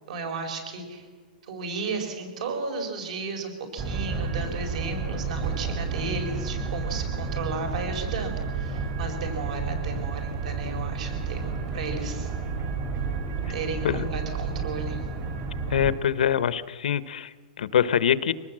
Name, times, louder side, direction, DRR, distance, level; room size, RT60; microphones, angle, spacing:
voice 1, 0.1-1.0 1.4-12.3 13.5-15.0, right 4 dB, 50° right, 5 dB, 4.8 m, -34 dB
sound 1, 3.8-16.0, right 4 dB, 25° right, 2.2 m, -31 dB
voice 2, 15.7-18.3, left 9 dB, 65° left, 15 dB, 0.9 m, -24 dB
24.0 x 19.5 x 7.6 m, 1.5 s
hypercardioid pair, 175°, 5 cm